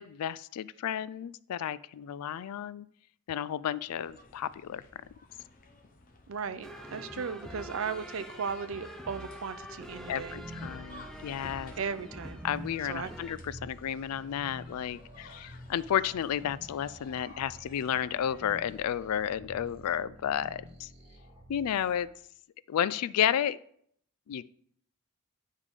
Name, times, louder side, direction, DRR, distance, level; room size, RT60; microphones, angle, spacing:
voice 1, 0.0-2.9 3.3-4.8 7.2-7.3 10.1-11.7 12.4-20.9 21.5-22.1 22.7-23.6 24.3-24.4, left 9 dB, 85° left, 0.3 m, -32 dB
sound 1, 3.9-18.8, left 2 dB, 40° left, 0.8 m, -56 dB
voice 2, 6.3-10.4 11.8-12.4 12.9-13.1, right 6 dB, 65° right, 0.5 m, -36 dB
sound 2, 6.6-13.4, equal, ahead, 0.5 m, -46 dB
sound 3, 9.6-22.1, equal, 30° right, 1.4 m, -49 dB
9.8 x 3.7 x 4.9 m
head